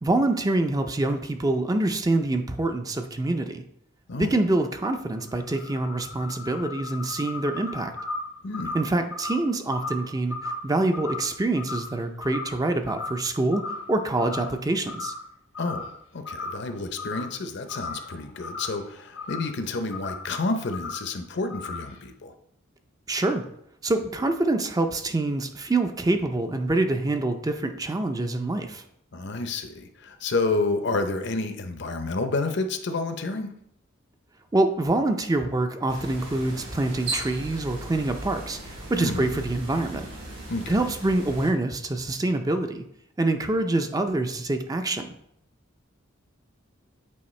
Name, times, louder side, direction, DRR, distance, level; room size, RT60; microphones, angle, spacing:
voice 1, 0.0-3.6 4.2-7.9 8.7-15.1 23.1-23.4 23.8-28.8 34.5-40.1 40.7-42.8 43.2-45.1, right 2 dB, 20° right, 6 dB, 0.4 m, -25 dB
sound 1, 4.9-12.6 12.9-13.3 13.5-14.6 14.8-15.2 15.5-16.0 16.3-17.4 17.7-19.6 19.9-20.3 20.7-21.1 21.5-22.0, left 3 dB, 85° left, 1.1 m, -36 dB
voice 2, 8.4-8.8 15.6-22.3 29.1-33.5 39.0-39.4 40.5-40.8, left 3 dB, 60° left, 7 dB, 0.7 m, -29 dB
sound 2, 35.9-41.5, right 2 dB, 90° right, 2.9 m, -37 dB
8.5 x 4.5 x 3.2 m, 0.73 s
head